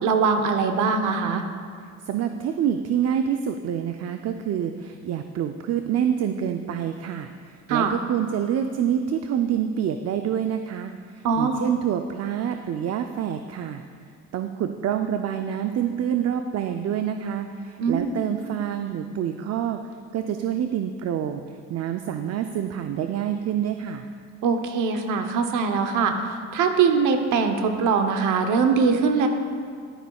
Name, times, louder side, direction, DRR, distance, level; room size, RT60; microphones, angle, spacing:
voice 1, 0.0-1.4 7.7-7.9 11.2-11.6 17.8-18.1 24.4-26.1 26.5-29.3, right 5 dB, 85° right, 5 dB, 0.9 m, -22 dB
voice 2, 2.1-13.8 14.3-19.8 20.1-21.4 21.7-24.1, right 9 dB, 55° right, 7 dB, 0.5 m, -27 dB
12.0 x 9.5 x 2.3 m, 2.1 s
cardioid pair, 90°, 30 cm